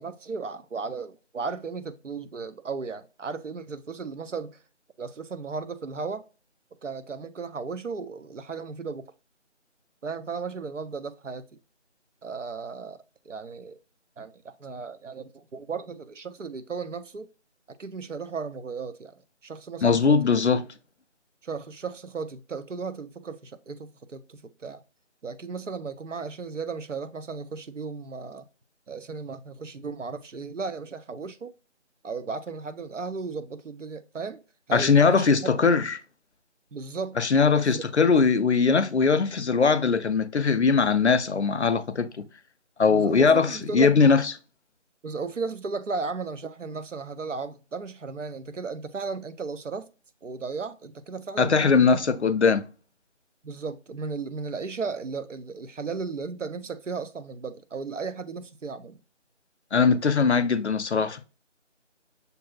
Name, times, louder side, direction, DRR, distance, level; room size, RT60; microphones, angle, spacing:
voice 1, 0.0-4.6 5.0-6.3 6.8-9.1 10.0-11.5 12.2-13.8 14.2-17.3 17.7-20.2 21.4-24.8 25.2-28.5 28.9-31.5 32.0-34.4 34.7-35.5 36.7-37.2 37.6-37.8 42.9-43.9 45.0-49.9 50.2-52.0 53.4-59.0, right 4 dB, 80° right, 0.7 m, -35 dB
voice 2, 19.8-20.6 34.7-36.0 37.2-42.2 42.8-44.3 51.4-52.6 59.7-61.2, left 5 dB, 65° left, 0.5 m, -21 dB
6.7 x 2.7 x 2.3 m
figure-of-eight pair, 170°, 37 cm